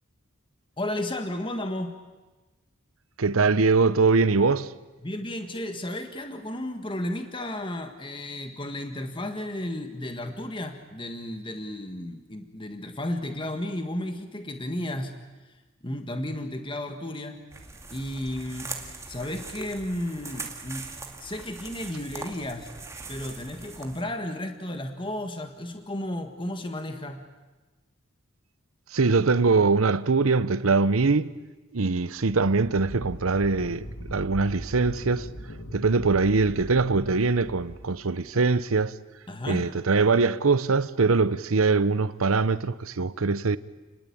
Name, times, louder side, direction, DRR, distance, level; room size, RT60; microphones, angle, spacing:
voice 1, 0.8-2.0 5.0-15.2 15.8-17.5 17.9-20.9 21.2-22.7 23.1-27.2 39.3-39.7, left 1 dB, 25° left, 1.7 m, -33 dB
voice 2, 3.2-4.7 28.9-31.3 31.7-35.3 35.7-38.9 39.5-43.6, right 4 dB, 80° right, 0.9 m, -22 dB
sound 1, 17.5-24.0, right 3 dB, 15° right, 2.2 m, -41 dB
sound 2, 32.4-38.6, equal, 85° left, 2.7 m, -41 dB
30.0 x 20.0 x 8.7 m
head